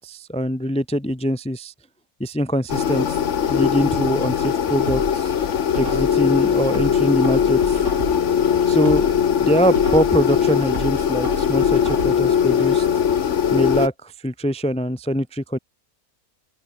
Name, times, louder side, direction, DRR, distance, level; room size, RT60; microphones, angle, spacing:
voice 1, 0.0-1.7 2.2-3.2 3.5-5.3 5.7-7.8 8.7-9.1 9.4-12.9 13.5-15.6, equal, 5° left, 0.6 m, -23 dB
sound 1, 2.7-13.9, left 8 dB, 55° left, 1.3 m, -20 dB
sound 2, 4.9-6.3 6.7-8.4 8.7-10.3 10.7-12.4 12.7-12.8, right 2 dB, 50° right, 5.7 m, -32 dB
open air
omnidirectional pair, 1.6 m